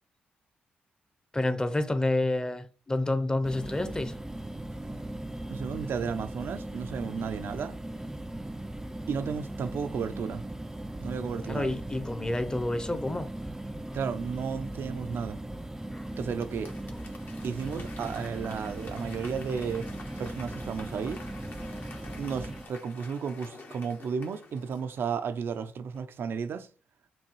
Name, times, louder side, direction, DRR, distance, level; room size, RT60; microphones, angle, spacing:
voice 1, 1.3-4.1 11.5-13.3 15.9-16.1, left 2 dB, 20° left, 0.8 m, -29 dB
sound 1, 3.4-22.7, right 1 dB, 10° right, 0.4 m, -38 dB
voice 2, 5.5-7.8 9.1-10.4 11.0-11.8 13.9-15.4 16.2-16.7 17.4-19.9 20.2-21.2 22.2-26.7, right 6 dB, 65° right, 0.5 m, -33 dB
Applause / Crowd, 16.1-25.6 25.9-26.0, left 3 dB, 55° left, 1.2 m, -49 dB
5.9 x 2.3 x 3.1 m
supercardioid pair, 50°, 4 cm